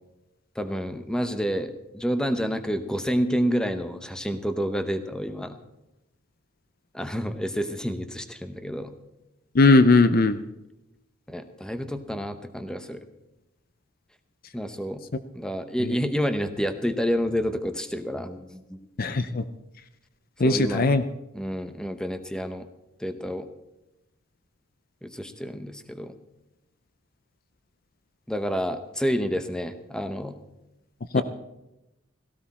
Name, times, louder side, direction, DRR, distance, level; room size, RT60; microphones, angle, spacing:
voice 1, 0.6-5.6 6.9-8.9 11.3-13.0 14.5-15.0 15.3-18.8 20.4-20.9 21.3-22.7 23.0-23.5 25.0-26.1 28.3-30.4 31.1-31.2, equal, 5° left, 9 dB, 0.8 m, -29 dB
voice 2, 9.5-10.4 19.0-19.4 20.4-21.0 31.1-31.2, left 3 dB, 40° left, 12 dB, 0.6 m, -18 dB
17.0 x 15.5 x 4.3 m, 0.93 s
head